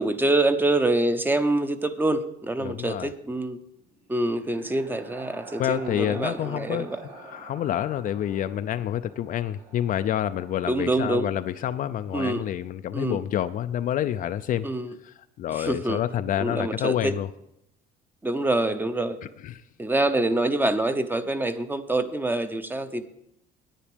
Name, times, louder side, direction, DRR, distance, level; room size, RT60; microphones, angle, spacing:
voice 1, 0.0-3.6 4.1-7.0 10.6-11.3 12.1-12.4 12.9-13.2 14.6-14.9 15.5-16.0 16.4-17.1 18.2-19.2 19.8-23.0, right 2 dB, 10° right, 10 dB, 0.8 m, -25 dB
voice 2, 2.6-3.1 5.6-6.9 7.3-14.7 15.0-17.3 19.4-19.6, left 11 dB, 55° left, 10 dB, 0.4 m, -28 dB
sound 1, 3.9-11.7, right 3 dB, 90° right, 1.7 m, -46 dB
10.0 x 9.2 x 5.1 m, 0.79 s
cardioid pair, 110°, 17 cm